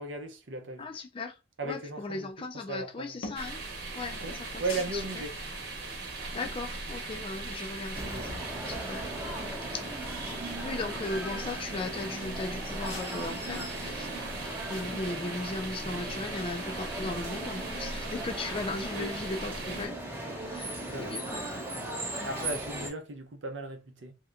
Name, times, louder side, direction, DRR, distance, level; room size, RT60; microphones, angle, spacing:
voice 1, 0.0-0.9 1.6-3.2 4.2-5.4 18.9-19.1 20.9-21.1 22.2-24.1, right 3 dB, 70° right, 0.7 m, -37 dB
voice 2, 0.8-1.4 1.6-3.6 3.9-4.6 4.9-5.0 6.3-9.1 9.7-9.8 10.6-14.2 14.7-20.0 20.5-21.8 22.2-22.3, left 3 dB, 25° left, 0.4 m, -37 dB
sound 1, 3.2-3.6 4.1-5.5 6.0-7.5 7.9-8.9 9.3-9.4 9.6-10.5 10.8-10.9 11.2-13.1 13.6-14.9, left 3 dB, 80° left, 0.7 m, -48 dB
sound 2, 3.4-19.9, right 3 dB, 50° right, 1.0 m, -39 dB
sound 3, 7.9-22.9, right 1 dB, 10° right, 0.7 m, -38 dB
3.3 x 2.8 x 2.4 m
head